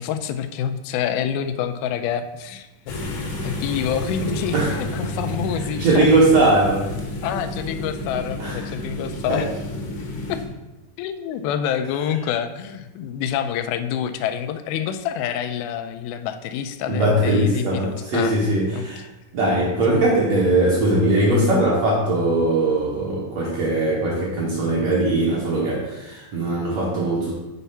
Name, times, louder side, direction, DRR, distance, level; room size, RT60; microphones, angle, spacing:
voice 1, 0.0-2.9 3.4-6.1 7.2-9.5 10.3-10.4 11.0-18.4 18.7-18.9, left 9 dB, 85° left, 9 dB, 2.5 m, -27 dB
sound 1, 2.9-10.4, left 1 dB, 65° left, 1.5 m, -30 dB
voice 2, 5.8-6.9 8.4-8.6 9.3-9.5 16.9-19.0 19.3-27.3, right 2 dB, 60° right, -4 dB, 1.8 m, -20 dB
7.0 x 4.1 x 5.5 m, 1.0 s
omnidirectional pair, 4.3 m